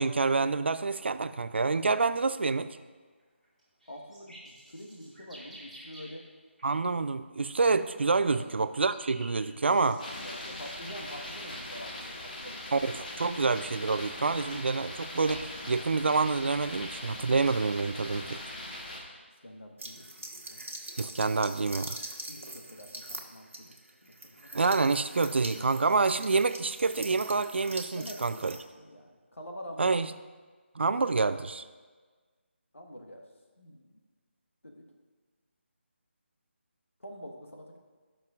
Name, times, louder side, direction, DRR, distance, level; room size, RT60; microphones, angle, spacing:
voice 1, 0.0-2.7 6.6-10.0 12.7-18.4 21.0-22.0 24.5-28.5 29.8-30.1 30.8-31.6, right 4 dB, 60° right, 12 dB, 0.4 m, -27 dB
sound 1, 3.2-6.3 6.6-6.7 7.9-11.8 12.1-12.3 13.2-13.3 14.0-15.7, right 1 dB, ahead, 1.6 m, -52 dB
voice 2, 3.9-6.3 8.3-8.4 9.7-12.9 19.4-20.6 22.3-23.7 24.0-24.5 27.9-30.0 32.7-33.2 33.6-34.0 34.6-34.8 37.0-37.8, equal, 85° left, 1 dB, 1.5 m, -46 dB
sound 2, 10.0-19.0, left 1 dB, 40° left, 1.4 m, -41 dB
sound 3, 19.8-28.6, right 1 dB, 80° right, 1.2 m, -43 dB
16.5 x 6.0 x 2.5 m, 1.4 s
figure-of-eight pair, 160°, 7 cm